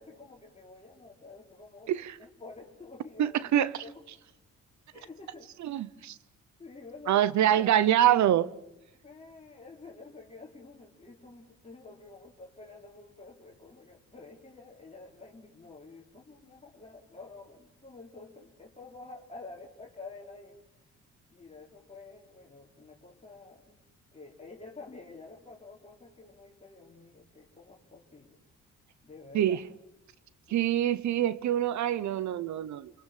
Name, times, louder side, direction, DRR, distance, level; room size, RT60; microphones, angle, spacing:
voice 1, 0.0-1.9 2.2-4.0 4.9-5.7 6.6-8.0 9.0-20.6 21.3-23.8 24.1-28.4 29.0-29.6 30.5-30.7, left 3 dB, 20° left, 3.5 m, -49 dB
voice 2, 3.2-3.7 5.6-6.2 7.1-8.5 29.3-29.6 30.5-32.9, right 11 dB, 70° right, 0.9 m, -25 dB
28.5 x 22.0 x 7.3 m
cardioid pair, 90°, 30 cm